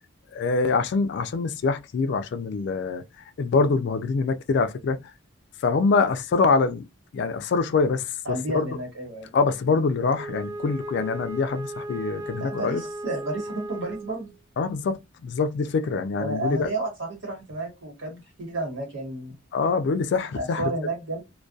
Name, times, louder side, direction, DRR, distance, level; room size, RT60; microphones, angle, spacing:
voice 1, 0.3-3.0 3.4-5.0 5.6-6.9 7.1-8.1 8.5-8.7 9.3-12.8 14.6-16.7 19.5-20.7, left 4 dB, 60° left, 0.3 m, -24 dB
voice 2, 8.2-9.3 12.4-14.3 16.2-19.4 20.3-21.2, right 2 dB, 60° right, 1.4 m, -31 dB
Wind instrument woodwind instrument, 10.1-14.4, right 1 dB, 20° right, 0.4 m, -36 dB
2.3 x 2.2 x 2.5 m
head